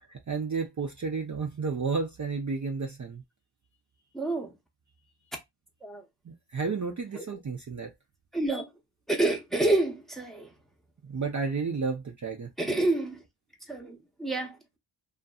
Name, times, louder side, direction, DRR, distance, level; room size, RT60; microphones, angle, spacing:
voice 1, 0.0-3.2 6.3-7.9 11.0-12.8, right 4 dB, 40° right, 0.5 m, -32 dB
voice 2, 4.1-4.5 5.8-6.0 7.1-7.2 8.3-8.6 9.1-10.5 12.6-13.2 13.7-14.6, right 2 dB, ahead, 0.7 m, -28 dB
2.6 x 2.5 x 2.3 m
wide cardioid pair, 45°, 49 cm